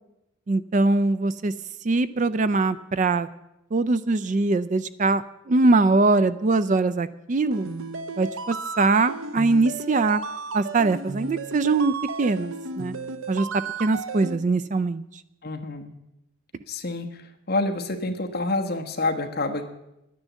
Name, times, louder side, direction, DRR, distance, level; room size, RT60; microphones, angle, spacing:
voice 1, 0.5-1.5 1.8-3.3 3.7-7.7 8.2-10.2 10.5-12.9 13.3-13.5 13.8-15.0, right 3 dB, 35° right, 15 dB, 0.4 m, -22 dB
sound 1, 7.5-14.4, right 3 dB, 75° right, 0.7 m, -34 dB
voice 2, 15.4-15.9 16.7-17.1 17.5-19.6, left 2 dB, 45° left, 4 dB, 1.2 m, -27 dB
11.0 x 9.9 x 7.3 m, 0.88 s
head